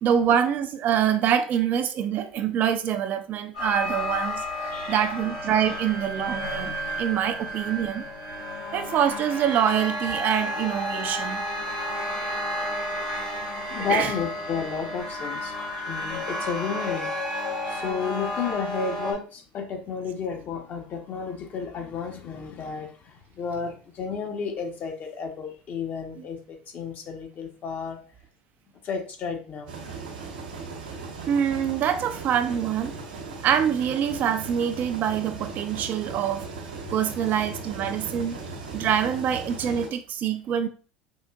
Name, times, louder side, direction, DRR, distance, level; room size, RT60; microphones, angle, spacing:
voice 1, 0.0-4.4 4.9-8.0 8.7-11.5 13.9-14.1 31.3-32.9 33.4-36.5 36.9-38.4 38.7-40.7, right 9 dB, 45° right, 0.4 m, -25 dB
sound 1, 3.5-19.1, left 1 dB, 85° left, 1.3 m, -32 dB
voice 2, 4.7-5.1 13.7-17.1 17.7-28.0 28.8-30.0, left 6 dB, 45° left, 0.8 m, -32 dB
sound 2, 29.7-39.9, right 3 dB, 80° right, 0.9 m, -38 dB
4.6 x 2.5 x 2.3 m
hypercardioid pair, 75°, 4 cm